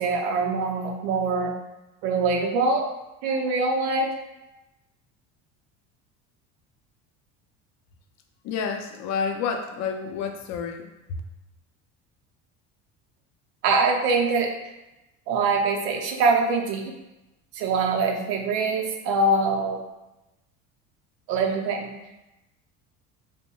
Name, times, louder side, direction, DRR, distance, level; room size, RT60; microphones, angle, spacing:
voice 1, 0.0-1.5 2.0-2.9 3.2-4.1 13.6-14.5 15.3-16.9 17.5-19.8 21.3-21.9, right 3 dB, 85° right, 2 dB, 0.5 m, -23 dB
voice 2, 8.4-10.9, left 6 dB, 55° left, 4 dB, 0.5 m, -29 dB
2.6 x 2.1 x 2.9 m, 0.97 s
cardioid pair, 115°, 33 cm